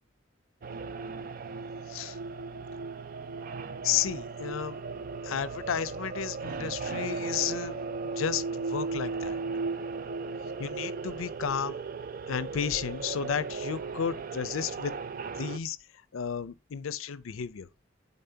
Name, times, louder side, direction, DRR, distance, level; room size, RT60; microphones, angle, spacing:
sound 1, 0.6-15.6, right 4 dB, 45° right, 0.4 m, -36 dB
voice 1, 3.8-4.8 5.2-7.8 8.2-9.4 10.6-11.8 12.3-14.9 15.4-15.8 16.1-17.7, left 8 dB, 90° left, 0.5 m, -32 dB
10.0 x 4.1 x 2.7 m
head